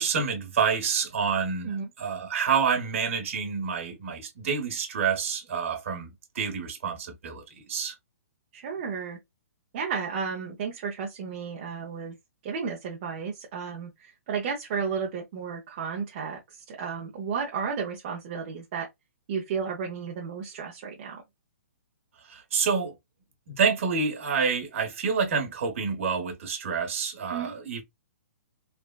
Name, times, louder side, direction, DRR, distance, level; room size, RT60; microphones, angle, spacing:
voice 1, 0.0-6.1 6.3-7.9 22.2-23.0 23.5-27.8, right 6 dB, 55° right, 1.2 m, -28 dB
voice 2, 8.5-9.2 9.7-12.2 12.4-16.4 16.7-18.9 19.3-21.2 27.3-27.5, right 6 dB, 35° right, 0.7 m, -33 dB
3.3 x 2.2 x 2.3 m
hypercardioid pair, 160°, 8 cm